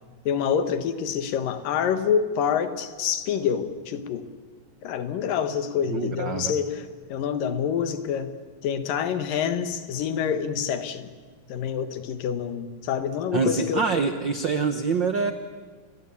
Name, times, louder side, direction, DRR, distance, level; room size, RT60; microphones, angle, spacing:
voice 1, 0.3-4.3 4.8-8.4 8.6-11.1 11.5-13.9, left 7 dB, 90° left, 10 dB, 3.1 m, -27 dB
voice 2, 5.9-6.5 13.3-15.3, right 4 dB, 70° right, 8 dB, 1.0 m, -25 dB
28.5 x 22.0 x 8.6 m, 1.5 s
omnidirectional pair, 3.8 m